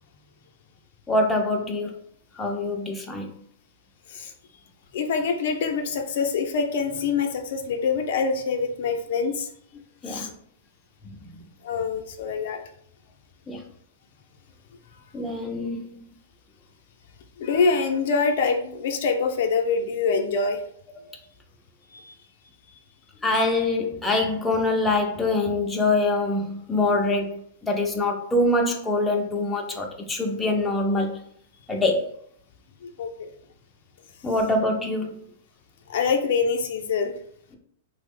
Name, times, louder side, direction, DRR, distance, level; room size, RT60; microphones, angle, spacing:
voice 1, 1.1-2.0 2.3-3.3 10.0-10.3 11.2-11.3 13.5-13.6 15.1-16.0 21.0-21.2 23.2-31.2 31.7-32.1 34.2-35.2, left 2 dB, 10° left, 1 dB, 0.5 m, -24 dB
voice 2, 4.9-9.5 10.1-10.3 11.6-12.6 17.4-20.6 21.9-22.1 32.8-33.1 35.9-37.1, left 5 dB, 65° left, 5 dB, 0.5 m, -25 dB
3.0 x 2.0 x 3.5 m, 0.64 s
hypercardioid pair, 125°, 0 cm